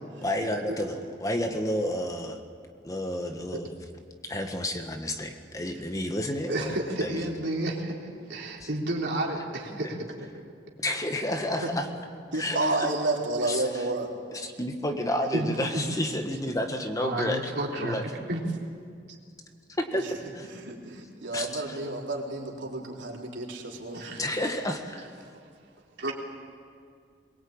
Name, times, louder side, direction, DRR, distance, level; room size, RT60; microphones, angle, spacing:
voice 1, 0.2-2.4 2.8-3.7 4.2-7.3 8.6-8.7 10.8-11.9 12.3-12.9 13.5-13.8 14.3-17.5 17.8-18.0 19.8-20.1 20.3-20.5 21.3-21.8 24.2-25.1, left 1 dB, 20° left, 5 dB, 1.5 m, -30 dB
voice 2, 6.5-7.9 8.3-10.0 15.3-15.5 15.7-15.9 17.0-18.0 18.3-18.4 23.9-24.3 26.0-26.1, right 1 dB, 65° right, -1 dB, 3.7 m, -31 dB
voice 3, 12.3-14.1 20.0-20.2 20.6-24.2, right 2 dB, 90° right, -1 dB, 3.8 m, -31 dB
22.5 x 21.5 x 8.8 m, 2.2 s
head